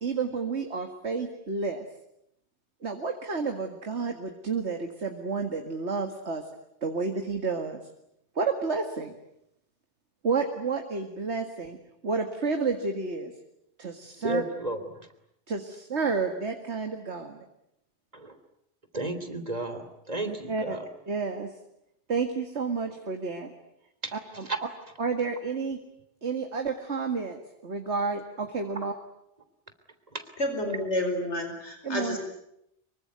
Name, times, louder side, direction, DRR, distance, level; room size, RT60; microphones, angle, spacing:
voice 1, 0.0-1.8 2.8-6.4 6.8-7.8 8.4-9.1 10.2-11.8 12.0-13.3 13.8-14.4 15.5-17.5 20.2-20.8 21.1-21.5 22.1-23.5 24.1-24.5 25.0-25.8 26.2-28.9 31.8-32.2, right 4 dB, 75° right, 5 dB, 2.3 m, -30 dB
voice 2, 14.2-15.1 18.1-18.3 18.9-20.8 24.0-24.1 24.4-24.6 30.1-30.2, right 2 dB, 35° right, 8 dB, 3.3 m, -33 dB
voice 3, 30.4-32.2, left 1 dB, 75° left, 5 dB, 5.1 m, -29 dB
25.5 x 23.5 x 9.5 m, 0.79 s
omnidirectional pair, 1.2 m